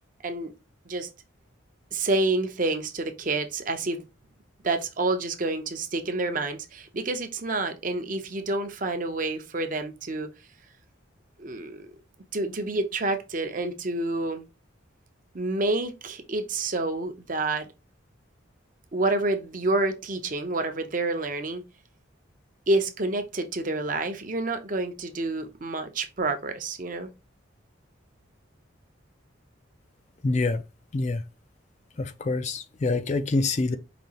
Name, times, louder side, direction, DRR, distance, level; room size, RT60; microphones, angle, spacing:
voice 1, 0.2-0.5 0.9-1.1 1.9-4.0 4.6-10.3 11.4-11.9 12.3-14.4 15.3-17.7 18.9-21.6 22.7-27.1, right 2 dB, 40° right, 0.6 m, -28 dB
voice 2, 30.2-30.6 30.9-31.2 32.0-33.8, left 3 dB, 35° left, 0.4 m, -26 dB
5.1 x 2.8 x 2.8 m
head